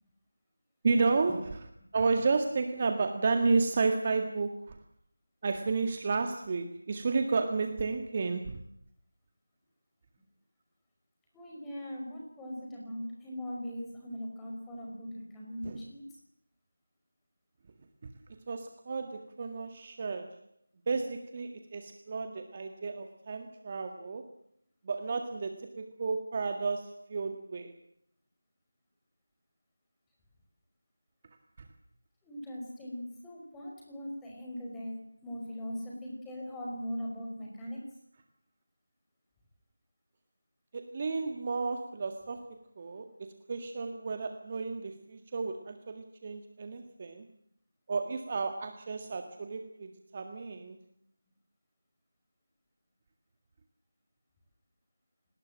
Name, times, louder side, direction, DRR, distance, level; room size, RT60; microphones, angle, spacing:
voice 1, 0.8-1.6 1.9-4.6 5.4-8.6 15.6-15.8 18.5-20.3 20.9-24.2 24.9-27.7 40.7-42.4 42.8-47.2 47.9-50.8, right 4 dB, 30° right, 6 dB, 1.9 m, -32 dB
voice 2, 11.3-16.0 32.2-35.0 35.2-37.8, equal, 5° left, -3 dB, 5.2 m, -40 dB
27.5 x 20.0 x 7.5 m, 0.70 s
figure-of-eight pair, 170°, 0 cm